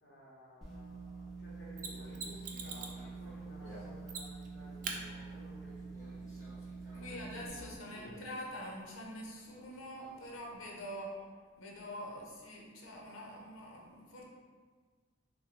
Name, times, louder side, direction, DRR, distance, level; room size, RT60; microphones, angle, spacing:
voice 1, 0.0-6.4 6.9-8.2, equal, 55° left, -6 dB, 1.3 m, -57 dB
sound 1, 0.6-7.5, right 4 dB, ahead, 0.7 m, -46 dB
Conversation, 1.8-10.6, equal, 15° left, 1.5 m, -58 dB
Mechanisms, 1.8-3.0 4.1-4.5 4.8-5.0 7.7-7.8, right 5 dB, 40° right, 0.4 m, -42 dB
voice 2, 6.9-11.1 11.6-14.2, equal, 85° left, -2 dB, 0.9 m, -45 dB
6.2 x 2.2 x 3.2 m, 1.5 s
head